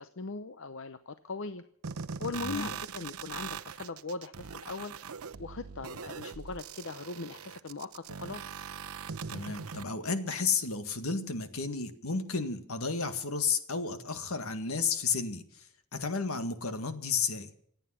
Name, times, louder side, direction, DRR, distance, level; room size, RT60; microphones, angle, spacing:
voice 1, 0.0-1.6 2.2-4.9 5.4-8.6, left 4 dB, 60° left, 11 dB, 0.8 m, -40 dB
sound 1, 1.8-9.8, right 6 dB, 80° right, 0.7 m, -41 dB
voice 2, 2.4-2.7 9.3-15.5 15.9-17.5, left 5 dB, 80° left, 9 dB, 1.8 m, -32 dB
27.0 x 9.1 x 5.8 m, 0.68 s
head